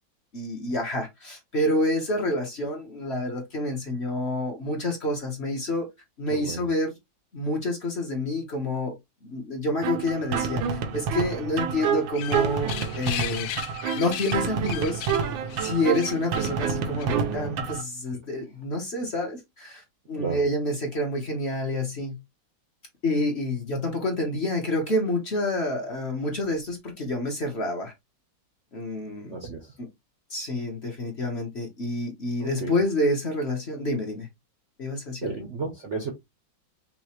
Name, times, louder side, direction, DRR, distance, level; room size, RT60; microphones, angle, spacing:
voice 1, 0.3-5.9 6.2-6.9 7.3-8.9 9.2-13.5 13.9-15.1 15.6-22.2 23.0-27.9 28.7-29.3 29.8-29.9 30.3-34.3 34.8-35.5, left 1 dB, 40° left, 1.2 m, -28 dB
voice 2, 6.3-6.6 17.0-17.5 20.1-20.4 29.3-29.7 32.4-32.8 35.2-36.1, right 4 dB, 50° right, 0.9 m, -33 dB
sound 1, 9.8-17.8, right 6 dB, 80° right, 1.5 m, -28 dB
sound 2, 12.0-17.3, left 11 dB, 80° left, 1.3 m, -37 dB
5.7 x 2.5 x 3.1 m
omnidirectional pair, 2.1 m